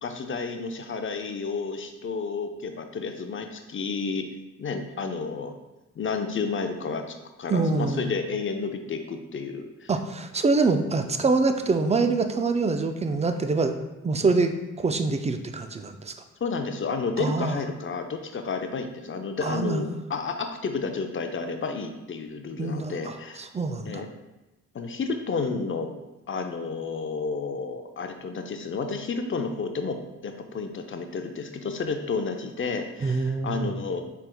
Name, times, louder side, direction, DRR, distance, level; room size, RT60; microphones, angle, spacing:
voice 1, 0.0-4.3 4.6-5.5 6.0-7.0 7.4-9.9 10.9-11.1 16.4-23.4 23.8-24.1 24.7-25.9 26.3-30.0 30.2-34.0, left 4 dB, 40° left, 6 dB, 0.5 m, -31 dB
voice 2, 7.5-8.1 9.9-13.8 14.0-14.5 14.8-16.1 17.2-17.6 19.4-19.9 22.6-24.0 33.0-33.7, right 3 dB, 20° right, 7 dB, 0.3 m, -25 dB
4.3 x 3.4 x 2.2 m, 1.0 s
cardioid pair, 60°, 32 cm